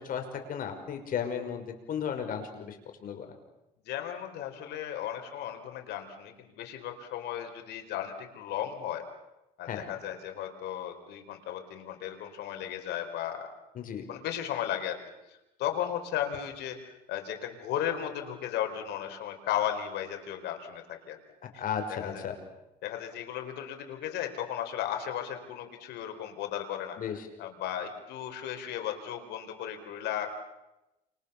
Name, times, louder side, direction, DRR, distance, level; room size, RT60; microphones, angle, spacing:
voice 1, 0.0-2.8 3.0-3.3 9.7-9.9 13.8-14.0 21.6-22.4 27.0-27.2, left 7 dB, 55° left, 5 dB, 5.8 m, -34 dB
voice 2, 3.9-9.0 9.6-13.5 14.1-15.0 15.3-16.8 17.1-21.2 21.5-21.6 21.9-22.3 22.8-27.0 27.4-30.3, left 10 dB, 80° left, 6 dB, 4.6 m, -35 dB
29.5 x 28.5 x 7.0 m, 0.95 s
cardioid pair, 110°, 17 cm